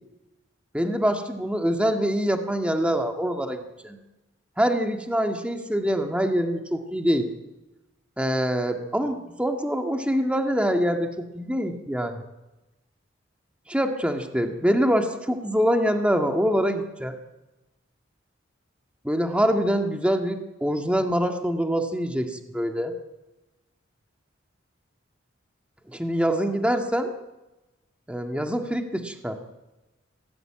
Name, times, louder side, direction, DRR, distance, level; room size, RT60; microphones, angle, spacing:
voice 1, 0.7-3.6 3.8-4.0 4.6-7.3 8.2-12.2 13.7-17.1 19.0-22.9 25.9-27.1 28.1-29.4, equal, 5° right, 4 dB, 1.9 m, -24 dB
26.0 x 18.0 x 8.9 m, 1.1 s
head